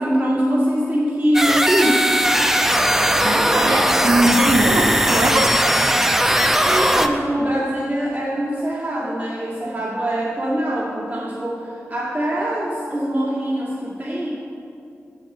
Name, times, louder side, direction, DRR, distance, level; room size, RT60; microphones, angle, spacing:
voice 1, 0.0-2.1 6.5-14.3, equal, 35° right, -8 dB, 2.2 m, -23 dB
sound 1, 1.3-7.1, equal, 10° right, 0.8 m, -18 dB
voice 2, 3.2-5.6, right 1 dB, 80° right, 1 dB, 1.1 m, -20 dB
7.7 x 7.5 x 7.6 m, 2.6 s
cardioid pair, 40°, 5 cm